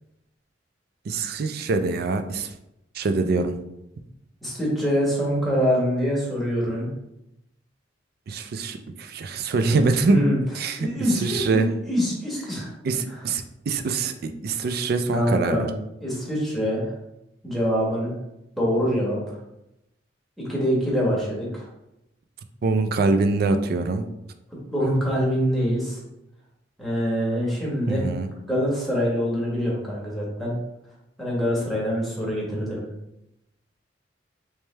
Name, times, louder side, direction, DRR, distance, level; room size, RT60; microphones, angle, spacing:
voice 1, 1.1-2.5 3.0-3.5 8.3-10.2 10.6-10.9 11.2-11.7 12.8-15.6 22.6-24.1 27.9-28.3, right 3 dB, 60° right, 9 dB, 0.4 m, -24 dB
voice 2, 4.4-6.9 9.7-10.4 10.8-12.7 13.1-13.2 15.1-15.7 16.0-16.9 17.4-18.1 18.6-19.4 20.4-21.7 24.7-26.0 26.8-28.0 28.5-30.6 31.2-32.8, equal, ahead, -6 dB, 1.2 m, -25 dB
3.2 x 3.1 x 3.2 m, 0.87 s
head